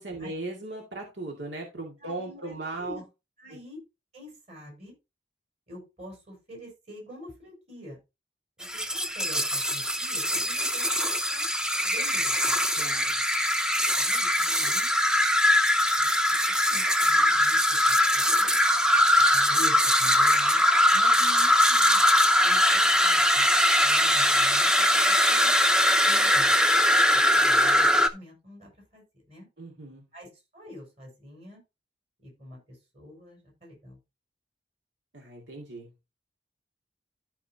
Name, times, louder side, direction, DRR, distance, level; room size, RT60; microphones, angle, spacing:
voice 1, 0.0-3.0 3.5-3.6 12.8-13.2 29.6-30.0 35.1-35.9, right 2 dB, 85° right, 0 dB, 2.3 m, -38 dB
voice 2, 2.0-3.0 3.4-3.8 4.1-4.9 5.7-8.0 8.6-11.5 11.8-12.6 14.0-14.9 16.0-16.1 16.7-17.6 17.9-18.6 19.3-20.6 20.9-22.0 22.4-23.5 23.8-25.5 26.1-26.6 27.1-29.5 30.1-30.3 30.5-31.6 32.2-34.0, left 1 dB, 35° right, 0 dB, 5.3 m, -46 dB
sound 1, 8.6-28.1, equal, 5° right, 0.6 m, -22 dB
13.5 x 4.9 x 2.9 m, 0.26 s
head